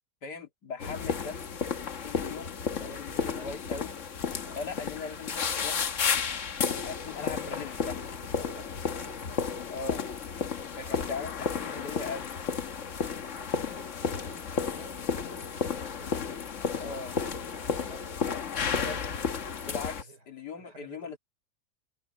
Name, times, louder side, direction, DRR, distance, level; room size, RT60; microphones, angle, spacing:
voice 1, 0.2-1.6 2.0-4.0 4.5-6.0 6.8-8.0 9.7-10.0 10.8-12.4 16.0-16.2 16.8-17.2 18.6-19.0 19.6-21.2, left 4 dB, 85° left, 2.9 m, -40 dB
sound 1, 0.8-20.0, left 6 dB, 50° left, 1.4 m, -32 dB
voice 2, 2.6-3.7 4.3-4.8 8.1-9.5 10.8-11.1 13.4-16.1 16.8-18.2 19.6-20.3 20.6-21.2, right 4 dB, 90° right, 4.5 m, -53 dB
omnidirectional pair, 1.7 m